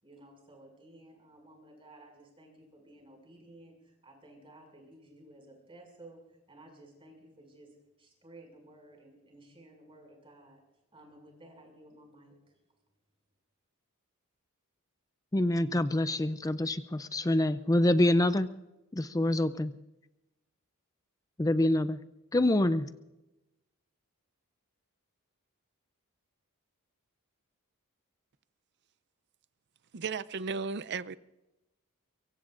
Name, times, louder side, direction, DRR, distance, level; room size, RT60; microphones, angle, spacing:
voice 1, 0.0-10.6 10.9-12.6, right 1 dB, 25° right, 6.0 m, -55 dB
voice 2, 15.3-18.5 18.9-19.7 21.4-22.0 22.3-22.9, left 1 dB, 15° left, 0.4 m, -26 dB
voice 3, 29.9-31.2, right 5 dB, 50° right, 0.5 m, -35 dB
24.0 x 23.0 x 2.5 m
head